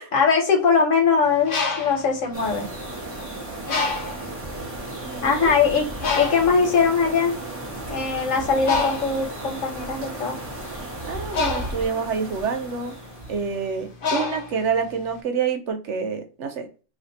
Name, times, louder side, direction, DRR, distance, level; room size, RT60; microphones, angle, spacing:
voice 1, 0.1-2.7 5.2-5.9 6.1-7.3 7.9-10.3, left 5 dB, 90° left, 2 dB, 1.4 m, -21 dB
Bird, 1.3-3.1 3.7-4.4 5.0-5.2 5.4-15.2, left 4 dB, 55° left, 0.7 m, -29 dB
sound 1, 2.3-13.9, right 2 dB, 10° right, 1.1 m, -35 dB
voice 2, 5.0-5.6 11.1-13.0 13.3-16.7, right 6 dB, 70° right, 6 dB, 1.0 m, -27 dB
2.7 x 2.6 x 3.9 m, 0.35 s
omnidirectional pair, 1.3 m